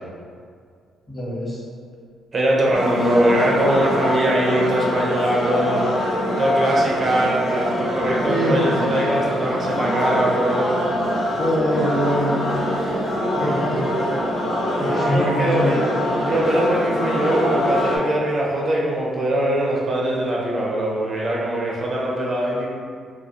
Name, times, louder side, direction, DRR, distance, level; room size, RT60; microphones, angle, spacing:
voice 1, 1.1-1.6 8.2-8.7 11.4-12.4 13.4-14.0 14.7-15.8, equal, 20° left, -8 dB, 1.2 m, -23 dB
voice 2, 2.3-5.8 6.4-10.8 14.3-22.7, right 1 dB, 40° right, -4 dB, 0.5 m, -22 dB
sound 1, 2.7-18.0, equal, 55° left, 0.9 m, -24 dB
2.8 x 2.5 x 2.7 m, 2.2 s
cardioid pair, 90°, 0 cm